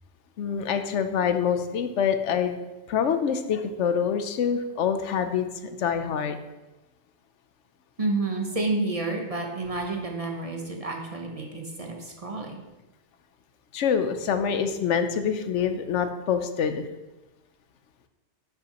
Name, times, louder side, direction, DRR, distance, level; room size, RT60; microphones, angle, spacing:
voice 1, 0.4-2.6 2.9-6.4 13.7-16.9, left 7 dB, 80° left, 8 dB, 1.0 m, -26 dB
voice 2, 8.0-12.6, right 2 dB, 35° right, 1 dB, 0.9 m, -30 dB
10.0 x 5.9 x 3.0 m, 1.1 s
omnidirectional pair, 1.2 m